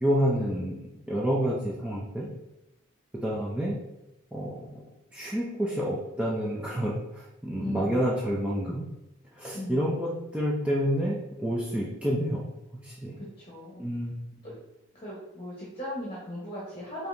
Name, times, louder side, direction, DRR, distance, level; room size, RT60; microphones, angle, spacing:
voice 1, 0.0-2.3 3.2-3.7 4.3-4.8 5.1-8.9 9.3-12.5 12.8-13.2 13.8-14.5, equal, 5° right, -6 dB, 0.5 m, -29 dB
voice 2, 7.6-8.0 9.5-9.8 13.2-13.8 14.4-14.5 14.9-17.1, left 1 dB, 30° left, -6 dB, 1.1 m, -38 dB
5.1 x 2.9 x 2.6 m, 0.94 s
head